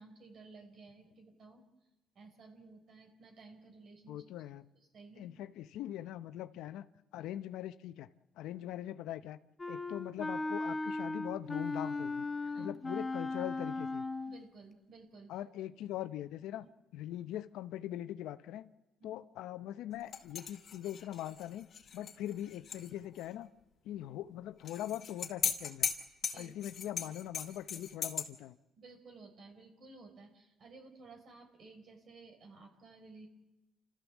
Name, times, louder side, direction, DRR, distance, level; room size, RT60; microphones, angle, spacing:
voice 1, 0.0-1.6 2.1-4.3 4.8-5.3 12.5-12.7 14.2-15.3 16.6-16.7 19.0-19.2 26.2-26.5 28.8-33.3, right 3 dB, 55° right, 4.6 m, -55 dB
voice 2, 4.1-4.7 5.2-6.8 7.1-8.1 8.4-9.4 9.7-12.3 12.6-14.0 15.3-16.7 16.9-18.7 19.0-21.7 21.9-23.5 23.8-25.9 26.3-28.6, left 12 dB, 85° left, 0.7 m, -42 dB
Wind instrument woodwind instrument, 9.6-14.4, left 3 dB, 20° left, 1.2 m, -37 dB
sound 1, 20.1-22.9 23.2-23.3 24.6-28.2, left 7 dB, 55° left, 2.8 m, -38 dB
29.0 x 14.0 x 7.3 m
cardioid pair, 85°, 0 cm